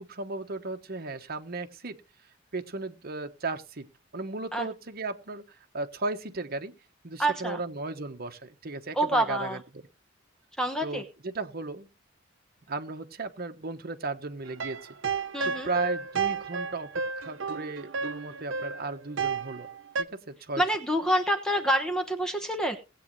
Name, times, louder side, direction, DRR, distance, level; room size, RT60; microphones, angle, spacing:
voice 1, 0.0-2.0 2.5-5.4 5.7-6.7 7.0-9.8 10.8-11.9 12.7-14.9 15.4-19.7 20.0-20.6, right 3 dB, 50° right, 1.2 m, -35 dB
voice 2, 7.2-7.6 8.9-9.6 10.6-11.0 15.3-15.7 20.6-22.8, right 1 dB, 5° left, 1.0 m, -27 dB
sound 1, 14.4-20.0, right 5 dB, 70° right, 0.8 m, -32 dB
18.5 x 8.6 x 3.2 m
head